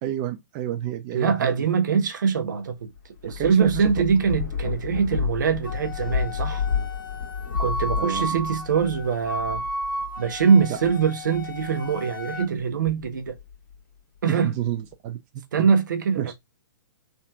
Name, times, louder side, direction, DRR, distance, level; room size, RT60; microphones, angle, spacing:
voice 1, 0.0-1.5 3.2-3.9 8.0-8.4 10.7-10.8 14.3-15.7 16.2-16.3, right 11 dB, 30° right, 0.4 m, -30 dB
voice 2, 1.1-2.9 3.2-6.6 7.6-9.6 10.2-13.4 14.2-14.5 15.5-16.2, right 6 dB, 65° right, 0.8 m, -23 dB
Thunder / Rain, 3.0-11.9 12.4-13.7, left 6 dB, 45° left, 1.8 m, -31 dB
Wind instrument woodwind instrument, 5.6-12.5, left 1 dB, 90° left, 0.9 m, -33 dB
3.5 x 2.7 x 2.2 m
hypercardioid pair, 125°, 11 cm